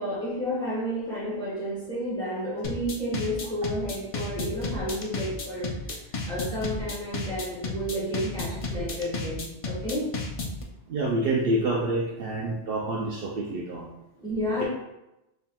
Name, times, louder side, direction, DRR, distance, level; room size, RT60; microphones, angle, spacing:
voice 1, 0.0-5.7 6.3-10.1 14.2-14.7, equal, 5° left, -7 dB, 1.2 m, -31 dB
sound 1, 2.6-10.6, left 3 dB, 50° left, 0.4 m, -32 dB
voice 2, 10.9-13.9 14.6-14.7, right 2 dB, 65° right, -2 dB, 0.7 m, -27 dB
4.2 x 3.5 x 2.2 m, 0.92 s
omnidirectional pair, 1.2 m